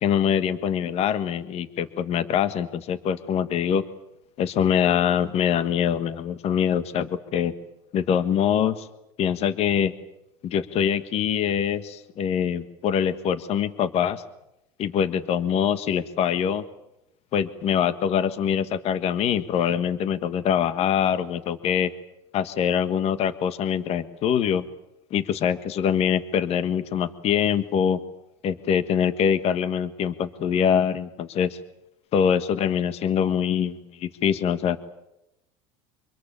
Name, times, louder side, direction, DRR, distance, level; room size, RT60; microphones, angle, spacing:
voice 1, 0.0-3.8 4.4-7.5 7.9-8.9 9.2-9.9 10.4-14.2 14.8-16.6 17.3-21.9 22.3-24.7 25.1-28.0 28.4-31.6 32.1-34.8, left 8 dB, 45° left, 12 dB, 1.5 m, -24 dB
26.0 x 21.5 x 8.8 m, 0.87 s
supercardioid pair, 115°, 14 cm